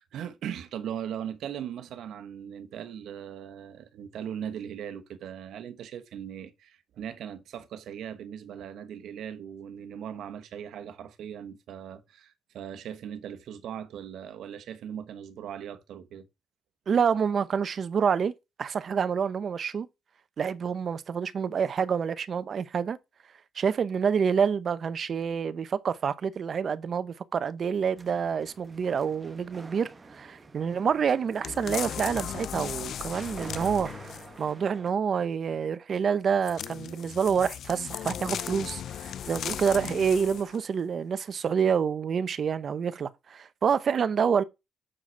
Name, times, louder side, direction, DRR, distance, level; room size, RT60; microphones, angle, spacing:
voice 1, 0.0-16.3, right 9 dB, 75° right, 1.1 m, -39 dB
voice 2, 16.9-18.3 18.6-19.9 20.4-23.0 23.6-33.9 34.4-44.4, right 7 dB, 50° right, 0.7 m, -27 dB
sound 1, 28.0-34.9, right 3 dB, 30° right, 1.1 m, -48 dB
sound 2, 31.4-34.4 36.4-40.6 41.2-41.3, left 9 dB, 65° left, 0.3 m, -37 dB
7.5 x 4.8 x 4.5 m
cardioid pair, 90°, 0 cm